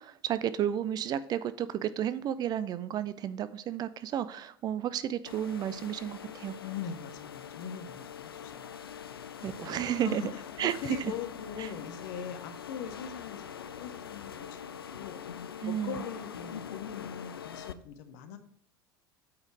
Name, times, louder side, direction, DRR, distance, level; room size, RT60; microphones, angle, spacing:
voice 1, 0.0-6.6 9.4-10.2 10.6-11.1 11.6-11.7 15.6-16.0, right 10 dB, 35° right, 14 dB, 0.5 m, -32 dB
sound 1, 5.3-17.7, left 8 dB, 75° left, 0.4 m, -43 dB
voice 2, 6.6-8.7 9.1-9.3 10.0-10.4 10.7-15.2 15.6-18.4, left 8 dB, 55° left, 9 dB, 1.0 m, -41 dB
8.5 x 4.4 x 4.6 m, 0.68 s
figure-of-eight pair, 75°, 12 cm